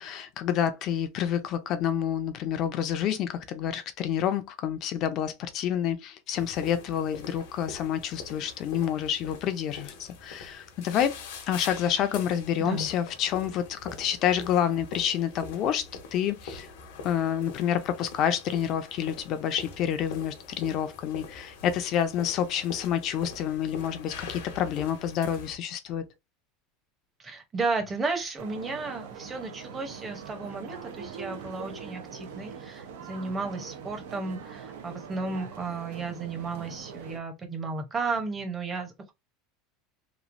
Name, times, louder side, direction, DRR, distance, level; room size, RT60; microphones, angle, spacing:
voice 1, 0.0-11.2 11.5-16.7 17.0-26.0, left 9 dB, 45° left, 0.5 m, -28 dB
sound 1, 6.3-25.6, left 4 dB, 80° left, 1.0 m, -43 dB
voice 2, 27.2-39.1, right 4 dB, 20° right, 0.8 m, -33 dB
sound 2, 28.4-37.2, right 6 dB, 85° right, 0.7 m, -42 dB
3.0 x 2.4 x 2.5 m
supercardioid pair, 140°, 0 cm